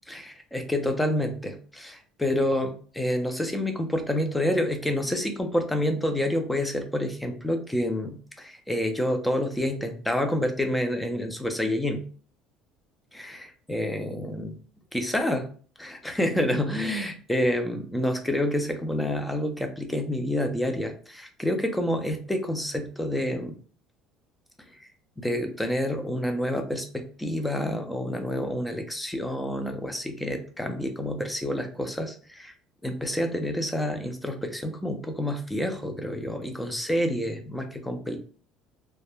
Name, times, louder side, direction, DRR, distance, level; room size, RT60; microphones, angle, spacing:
voice 1, 0.1-12.0 13.3-14.6 14.9-15.5 15.8-23.5 25.2-32.5 32.8-38.2, left 1 dB, 5° left, 5 dB, 0.4 m, -28 dB
2.1 x 2.0 x 3.1 m, 0.42 s
cardioid pair, 140°, 0 cm